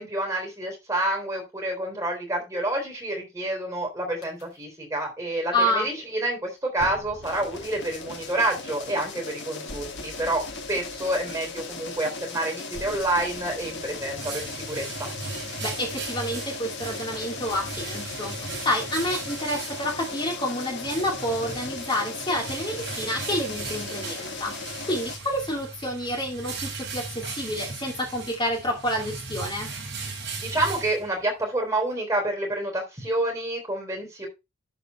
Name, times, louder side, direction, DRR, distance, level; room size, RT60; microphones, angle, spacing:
voice 1, 0.0-15.1 30.4-34.3, right 1 dB, 15° right, 1 dB, 3.7 m, -28 dB
sound 1, 4.2-4.4 6.8-14.5, left 1 dB, 70° left, 3.7 m, -47 dB
voice 2, 5.5-5.9 15.6-29.7, left 1 dB, 20° left, -1 dB, 2.4 m, -29 dB
sound 2, 7.2-25.2, left 3 dB, 50° left, 1.6 m, -37 dB
sound 3, 13.6-31.4, right 4 dB, 55° right, 3.8 m, -38 dB
11.5 x 4.9 x 4.3 m, 0.24 s
head